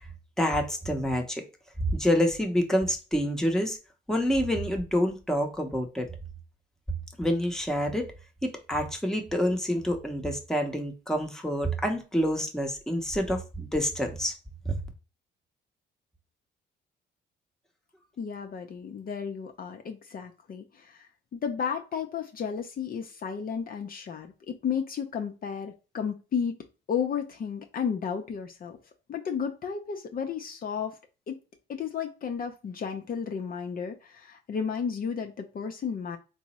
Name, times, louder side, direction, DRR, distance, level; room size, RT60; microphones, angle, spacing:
voice 1, 0.4-1.4 1.8-3.8 4.1-6.1 7.2-8.1 8.4-14.3 14.7-14.8, equal, 5° left, 0.8 m, -27 dB
voice 2, 18.2-21.1 21.3-26.6 26.9-28.8 29.1-31.0 31.3-31.4 31.7-36.2, left 7 dB, 45° left, 0.5 m, -33 dB
3.5 x 2.0 x 4.1 m
cardioid pair, 90°, 20 cm